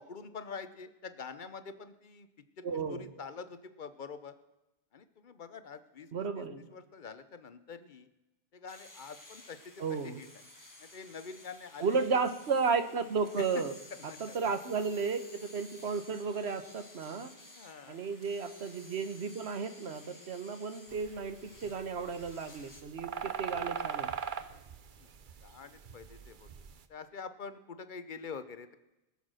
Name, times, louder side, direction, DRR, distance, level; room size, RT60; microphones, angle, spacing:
voice 1, 0.0-2.3 2.6-4.4 4.9-6.4 6.7-8.1 8.5-10.3 10.8-11.9 13.4-13.6 14.1-14.5 17.6-18.0 23.1-23.4 24.9-25.1 25.4-26.5 26.9-28.8, left 5 dB, 50° left, 11 dB, 0.9 m, -46 dB
voice 2, 2.6-3.0 6.1-6.7 9.8-10.2 11.8-13.7 14.2-17.3 17.9-24.1, right 5 dB, 75° right, 10 dB, 1.3 m, -33 dB
sound 1, 8.7-22.8, left 2 dB, 20° left, 1.3 m, -55 dB
sound 2, 20.9-26.8, right 7 dB, 55° right, 0.8 m, -40 dB
20.0 x 7.0 x 6.4 m, 0.99 s
omnidirectional pair, 1.1 m